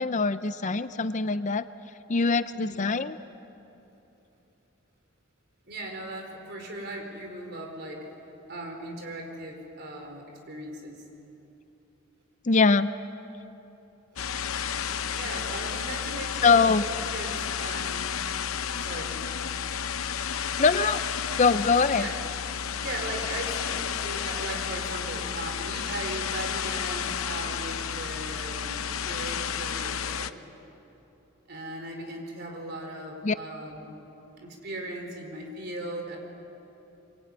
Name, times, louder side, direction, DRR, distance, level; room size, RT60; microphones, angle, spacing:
voice 1, 0.0-1.6 2.1-3.2 12.4-12.9 16.4-16.8 20.6-21.0 21.4-22.1 33.2-33.3, left 4 dB, 35° left, 13 dB, 0.5 m, -22 dB
voice 2, 2.5-2.9 5.6-8.2 8.5-11.0 15.1-16.6 17.1-18.1 18.4-19.2 22.0-22.2 22.8-30.3 31.5-34.0 34.4-36.2, right 1 dB, 50° right, 2 dB, 4.6 m, -38 dB
sound 1, 14.2-30.3, left 7 dB, 85° left, 0.8 m, -32 dB
24.0 x 22.5 x 9.6 m, 2.9 s
head